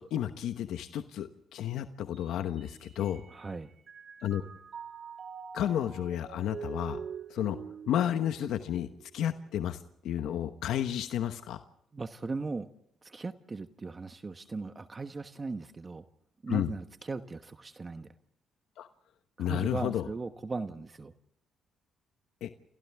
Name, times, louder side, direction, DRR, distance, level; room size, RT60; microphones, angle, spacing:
voice 1, 0.1-3.2 4.2-4.4 5.5-7.0 7.3-7.6 7.9-8.9 9.1-11.6 16.5-16.7 18.8-18.9 19.4-20.1 22.4-22.5, left 10 dB, 80° left, 9 dB, 1.1 m, -32 dB
Mallet percussion, 2.1-3.5 3.9-9.3, right 6 dB, 50° right, 2.4 m, -45 dB
voice 2, 3.3-3.7 11.9-12.7 13.0-16.0 16.4-18.1 19.4-21.1, right 3 dB, 30° right, 9 dB, 1.1 m, -38 dB
29.0 x 28.0 x 3.5 m, 0.76 s
cardioid pair, 90°, 0 cm